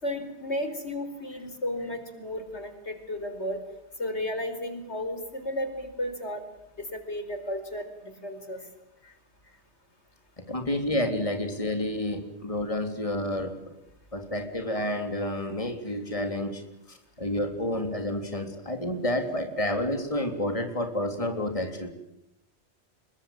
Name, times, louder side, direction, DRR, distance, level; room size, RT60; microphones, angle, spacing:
voice 1, 0.0-3.6 4.0-6.4 6.9-8.6, left 1 dB, 85° left, 8 dB, 4.9 m, -33 dB
voice 2, 10.4-13.7 14.1-16.6 16.9-21.9, left 1 dB, 30° left, 6 dB, 3.6 m, -30 dB
28.0 x 23.0 x 9.1 m, 0.85 s
omnidirectional pair, 1.1 m